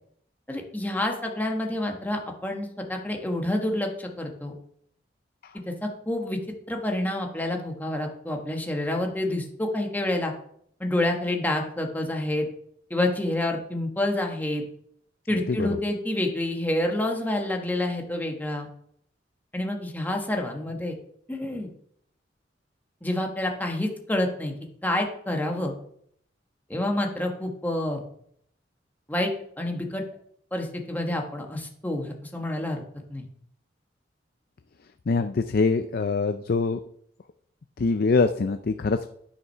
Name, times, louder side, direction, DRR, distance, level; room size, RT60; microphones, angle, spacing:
voice 1, 0.5-4.5 5.7-6.4 6.7-10.3 10.8-12.4 12.9-14.6 15.3-18.7 19.5-21.0 21.3-21.7 23.0-24.5 24.8-25.7 26.7-28.0 29.1-29.3 29.6-30.0 30.5-32.8 33.1-33.2, left 1 dB, 10° left, 2 dB, 1.2 m, -28 dB
voice 2, 35.1-36.8 37.8-39.1, left 4 dB, 55° left, 9 dB, 0.4 m, -24 dB
9.5 x 5.8 x 5.5 m, 0.68 s
head